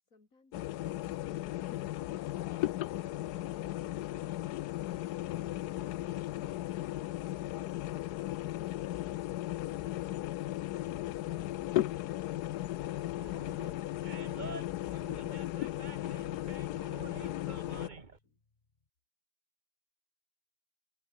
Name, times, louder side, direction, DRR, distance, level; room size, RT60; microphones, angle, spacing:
voice 1, 0.0-2.2 16.4-18.4, left 3 dB, 60° left, 4.2 m, -68 dB
sound 1, 0.5-17.9, left 15 dB, 85° left, 1.2 m, -36 dB
Animal, 13.1-18.2, right 4 dB, 30° right, 1.6 m, -48 dB
sound 2, 17.9-18.9, left 3 dB, 25° left, 1.7 m, -63 dB
omnidirectional pair, 1.6 m